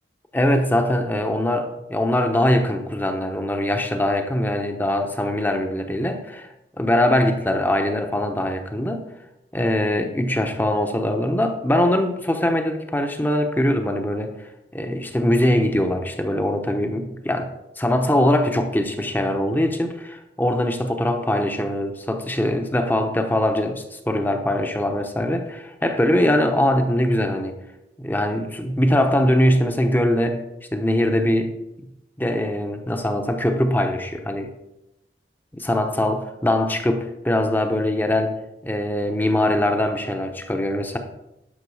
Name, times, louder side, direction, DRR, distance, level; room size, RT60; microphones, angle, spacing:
voice 1, 0.3-6.5 6.8-9.1 9.5-27.6 28.0-30.4 30.7-31.9 32.2-34.5 35.5-38.4 38.6-41.0, left 1 dB, 10° left, 5 dB, 0.9 m, -22 dB
11.0 x 6.3 x 4.8 m, 0.91 s
head